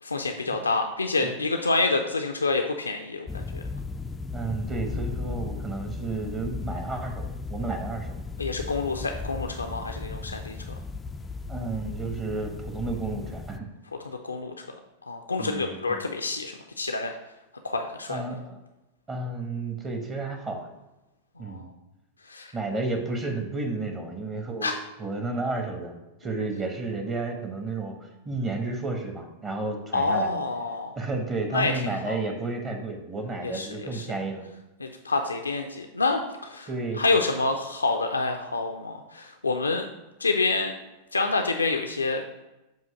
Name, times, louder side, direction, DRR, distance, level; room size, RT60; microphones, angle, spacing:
voice 1, 0.0-3.6 8.4-10.6 14.0-14.6 15.1-17.1 17.6-18.2 21.4-21.6 22.3-22.5 24.6-24.7 29.9-30.9 31.5-32.2 33.4-34.1 34.8-36.7 37.0-39.9 40.2-40.7 41.1-42.2, left 3 dB, 80° left, 4 dB, 0.4 m, -27 dB
sound 1, 3.3-13.6, left 4 dB, 15° left, 0.3 m, -36 dB
voice 2, 4.3-8.1 11.5-13.7 15.4-16.0 18.1-18.6 19.1-20.7 21.4-21.7 22.5-24.7 25.0-25.9 26.2-30.3 30.9-34.5 36.7-37.2, right 3 dB, 20° right, 4 dB, 1.1 m, -32 dB
7.5 x 2.8 x 5.7 m, 0.99 s
figure-of-eight pair, 90°, 0 cm